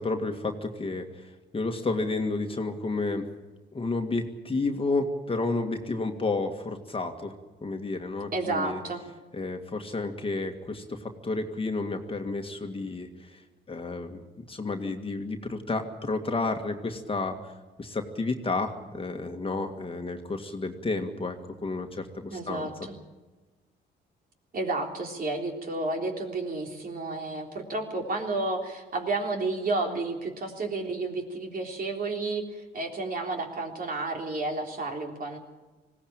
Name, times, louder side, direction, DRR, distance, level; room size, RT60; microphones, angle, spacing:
voice 1, 0.0-3.3 3.7-7.3 7.6-8.8 9.3-14.2 14.5-17.5 17.8-22.7, left 3 dB, 25° left, 4 dB, 2.0 m, -31 dB
voice 2, 8.3-9.0 22.3-23.0 24.5-32.4 32.7-35.4, right 2 dB, 45° right, 2 dB, 3.6 m, -31 dB
20.5 x 16.5 x 9.0 m, 1.2 s
cardioid pair, 90°, 20 cm